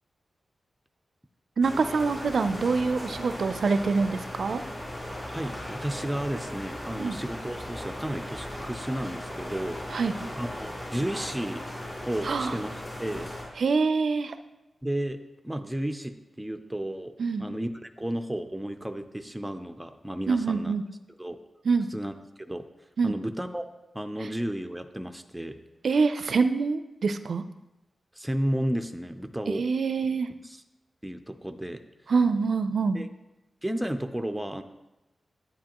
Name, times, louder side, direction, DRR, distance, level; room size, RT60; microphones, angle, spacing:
sound 1, 1.6-13.4, left 1 dB, 25° left, 3.0 m, -38 dB
voice 1, 1.6-4.6 7.0-7.2 9.9-10.1 12.2-12.6 13.6-14.3 17.2-17.5 20.3-20.8 21.7-21.9 23.0-23.1 25.8-27.4 29.5-30.3 32.1-33.0, right 4 dB, 65° right, 10 dB, 0.4 m, -25 dB
voice 2, 5.3-10.0 10.4-11.6 12.0-12.7 13.0-13.3 14.8-15.2 15.4-20.7 21.2-21.4 21.9-22.1 22.4-22.6 23.0-23.7 23.9-25.6 28.1-29.6 30.4-30.6 31.0-31.8 32.9-33.1 33.6-34.6, right 1 dB, 5° right, 7 dB, 0.4 m, -33 dB
10.0 x 9.1 x 2.9 m, 1.0 s
wide cardioid pair, 155°, 0 cm